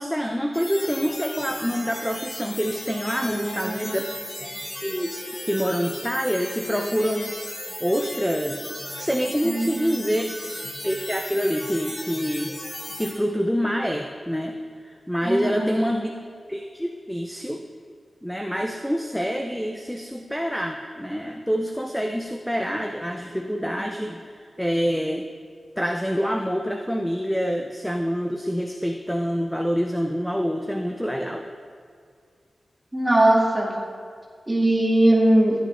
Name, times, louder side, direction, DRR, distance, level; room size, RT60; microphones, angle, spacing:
voice 1, 0.0-4.1 4.4-4.5 4.8-5.1 5.4-7.4 7.8-8.7 9.0-10.3 10.8-12.6 13.0-14.6 14.8-16.1 16.5-17.6 18.2-25.3 25.8-31.5, equal, ahead, 3 dB, 0.5 m, -26 dB
sound 1, 0.5-13.1, left 1 dB, 30° left, 2.0 m, -36 dB
voice 2, 3.2-4.0 9.4-10.2 15.3-15.8 32.9-33.7 34.5-35.6, right 1 dB, 15° right, -3 dB, 1.9 m, -21 dB
13.0 x 9.5 x 3.3 m, 2.2 s
wide cardioid pair, 120°, 0 cm